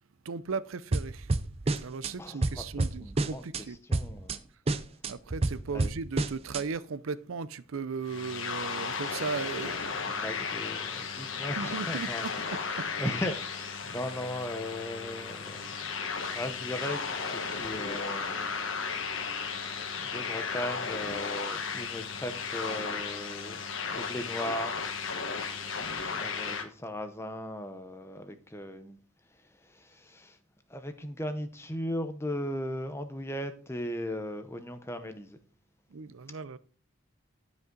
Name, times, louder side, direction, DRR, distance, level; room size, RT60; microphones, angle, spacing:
voice 1, 0.3-1.3 1.8-3.8 5.1-9.8 11.5-12.6 35.9-36.6, right 5 dB, 80° right, 0.5 m, -37 dB
sound 1, 0.9-2.1 2.4-3.6 3.9-4.4 4.7-6.6, right 2 dB, 30° right, 0.5 m, -29 dB
voice 2, 2.2-4.4 5.7-5.9 9.6-15.9 16.3-18.5 19.9-23.6 23.9-24.7 25.4-25.7 26.1-29.0 29.3-30.4 30.7-35.4, left 1 dB, 10° left, 0.7 m, -38 dB
sound 2, 8.0-26.7, left 5 dB, 75° left, 1.2 m, -35 dB
12.5 x 5.3 x 3.8 m
head